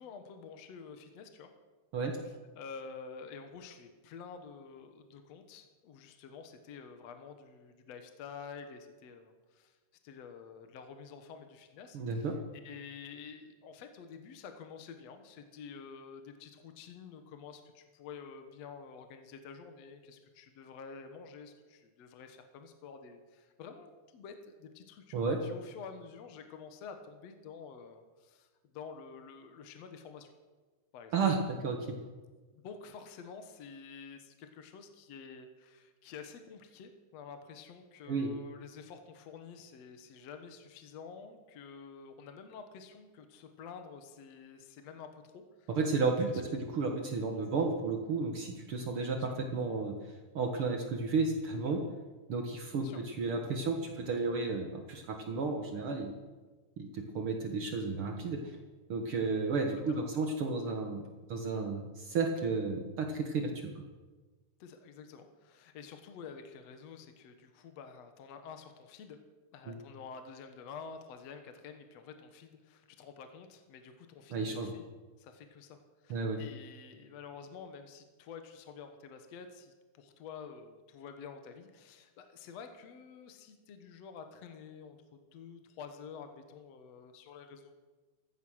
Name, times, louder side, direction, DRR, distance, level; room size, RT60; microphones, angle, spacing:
voice 1, 0.0-1.5 2.5-9.8 10.0-12.4 12.6-28.5 28.7-30.3 30.9-31.1 32.5-45.7 46.3-46.4 49.1-49.4 52.8-53.0 59.9-60.2 64.6-69.2 69.5-74.9 75.2-75.8 76.0-85.0 85.3-87.7, left 6 dB, 60° left, 7 dB, 1.8 m, -49 dB
voice 2, 11.9-12.3 25.1-25.4 31.1-31.8 38.1-38.3 45.7-49.9 50.3-51.8 52.3-56.1 56.8-58.6 58.9-61.0 61.3-63.7 69.7-69.8 74.3-74.7 76.1-76.4, right 4 dB, 80° right, 3 dB, 1.2 m, -32 dB
15.0 x 15.0 x 6.3 m, 1.3 s
omnidirectional pair, 4.6 m